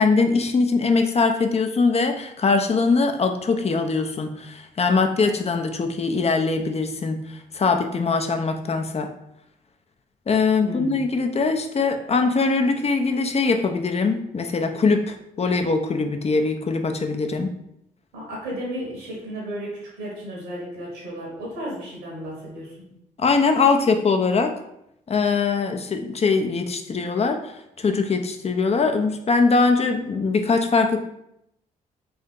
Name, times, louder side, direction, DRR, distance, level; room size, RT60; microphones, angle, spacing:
voice 1, 0.0-9.1 10.3-17.5 23.2-24.5 25.1-27.5 27.8-31.0, left 4 dB, 35° left, 6 dB, 0.6 m, -22 dB
voice 2, 10.6-11.0 18.1-22.8, equal, 85° right, -3 dB, 1.5 m, -34 dB
3.3 x 2.7 x 3.7 m, 0.78 s
hypercardioid pair, 45°, 18 cm